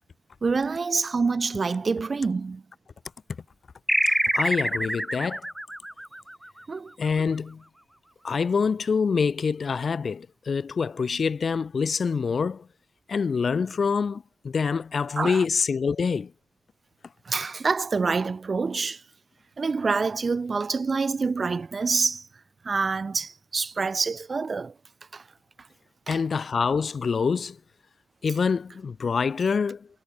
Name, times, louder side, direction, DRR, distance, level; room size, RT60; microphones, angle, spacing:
voice 1, 0.4-2.6 6.7-6.9 15.2-15.4 17.3-19.0 19.6-22.2 22.6-24.7 25.1-25.2 26.1-26.2, right 4 dB, 30° right, 2.1 m, -26 dB
sound 1, 3.9-6.9, right 1 dB, 5° right, 0.6 m, -26 dB
voice 2, 4.1-5.5 7.0-7.6 8.2-12.7 13.1-16.3 26.1-27.6 28.2-29.9, left 5 dB, 40° left, 2.1 m, -26 dB
cardioid pair, 90°, 0 cm